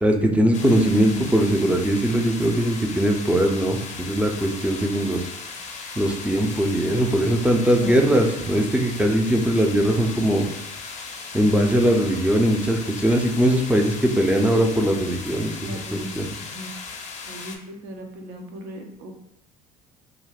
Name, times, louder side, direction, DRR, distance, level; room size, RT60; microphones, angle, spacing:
voice 1, 0.0-5.2 6.0-10.5 11.3-16.3, right 1 dB, 5° right, 2 dB, 0.5 m, -20 dB
sound 1, 0.5-17.6, left 4 dB, 40° left, 0.5 m, -37 dB
voice 2, 7.8-8.1 15.6-16.7 17.3-19.2, right 1 dB, 65° right, 3 dB, 0.6 m, -37 dB
2.4 x 2.1 x 3.4 m, 0.77 s
hypercardioid pair, 65°, 18 cm